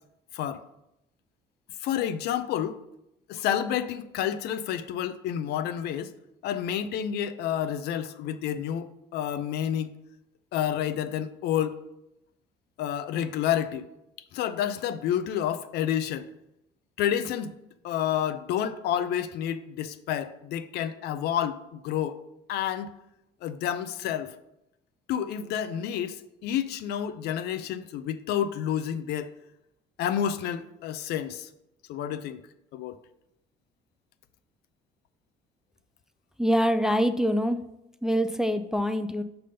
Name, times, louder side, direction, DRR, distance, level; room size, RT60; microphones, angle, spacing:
voice 1, 1.8-2.8 3.3-6.1 6.4-9.9 10.5-11.8 12.8-13.9 14.3-16.3 17.0-17.6 17.8-22.2 22.5-23.0 23.4-24.3 25.1-29.3 30.0-31.5 31.9-32.4 32.7-32.9, left 10 dB, 75° left, 0.5 m, -29 dB
voice 2, 36.4-37.6 38.0-39.2, equal, 5° right, 0.3 m, -24 dB
5.2 x 3.4 x 5.5 m
cardioid pair, 110°, 17 cm